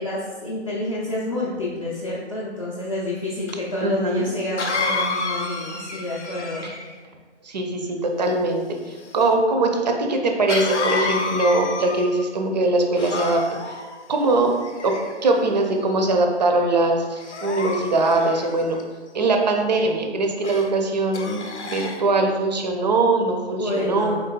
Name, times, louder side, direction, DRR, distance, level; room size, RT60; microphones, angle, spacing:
voice 1, 0.0-6.7 23.5-24.2, left 1 dB, 30° left, -7 dB, 0.5 m, -29 dB
Cough, 3.5-3.6 4.6-7.0 10.5-12.3 13.0-13.8 14.6-15.3 15.9-16.2 17.2-18.8 20.4-20.7 21.1-22.0, left 3 dB, 85° left, 0.7 m, -29 dB
voice 2, 3.8-4.2 6.6-6.8 7.4-13.8 14.1-14.5 14.8-18.8 19.1-21.5 21.7-24.2, right 2 dB, 40° right, 3 dB, 0.5 m, -21 dB
4.8 x 3.9 x 2.2 m, 1.4 s
figure-of-eight pair, 145°, 34 cm